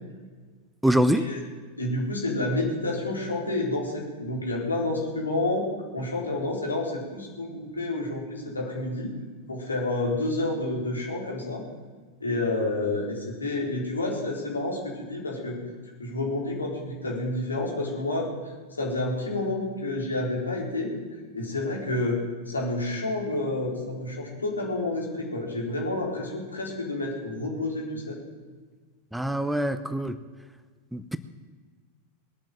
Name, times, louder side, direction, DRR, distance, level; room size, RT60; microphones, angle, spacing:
voice 1, 0.8-1.3 29.1-30.2 30.9-31.2, equal, 5° right, 13 dB, 0.7 m, -24 dB
voice 2, 1.8-9.1 9.5-11.6 12.2-15.6 16.0-20.9 21.3-28.2, left 2 dB, 75° left, -1 dB, 4.1 m, -29 dB
21.0 x 8.9 x 7.6 m, 1.4 s
figure-of-eight pair, 90°, 0 cm